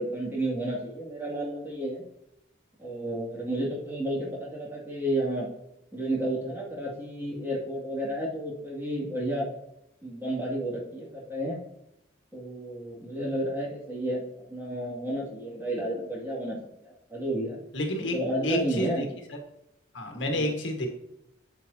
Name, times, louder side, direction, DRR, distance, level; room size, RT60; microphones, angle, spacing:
voice 1, 0.0-2.0 2.8-5.5 5.9-9.5 10.0-11.6 12.3-14.2 14.5-16.6 16.8-17.6 18.0-19.1 20.3-20.5, right 1 dB, 10° right, -5 dB, 2.3 m, -31 dB
voice 2, 17.7-19.1 19.9-20.9, left 1 dB, 70° left, 3 dB, 1.6 m, -29 dB
9.0 x 8.1 x 2.8 m, 0.82 s
head